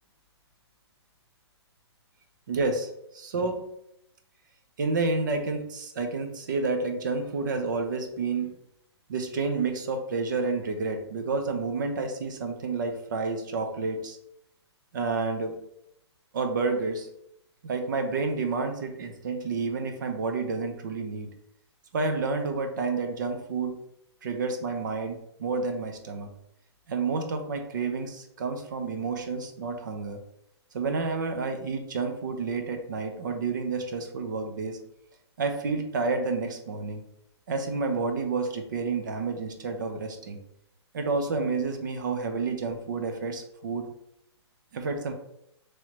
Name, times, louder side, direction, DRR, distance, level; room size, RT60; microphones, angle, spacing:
voice 1, 2.5-3.6 4.8-8.5 9.1-14.2 14.9-15.6 16.3-17.1 17.6-21.3 21.9-23.7 24.2-26.3 26.9-30.2 30.7-34.8 35.4-37.0 37.5-40.4 40.9-43.9 44.7-45.1, right 4 dB, 45° right, 5 dB, 0.7 m, -30 dB
5.5 x 3.2 x 3.0 m, 0.77 s
hypercardioid pair, 170°, 15 cm